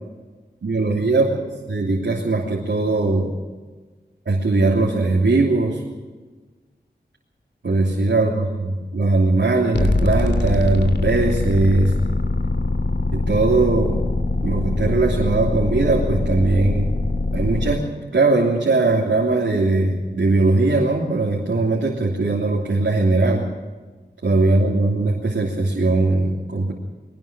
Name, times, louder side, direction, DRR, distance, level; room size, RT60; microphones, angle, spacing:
voice 1, 0.6-1.3 1.6-3.3 4.2-5.8 7.6-11.9 13.1-14.0 14.4-16.9 17.3-17.8 18.1-23.5 24.2-26.7, right 3 dB, 80° right, -3 dB, 3.1 m, -20 dB
sound 1, 9.7-17.8, left 2 dB, 70° left, 2.7 m, -22 dB
22.5 x 19.0 x 6.2 m, 1.3 s
wide cardioid pair, 70°, 19 cm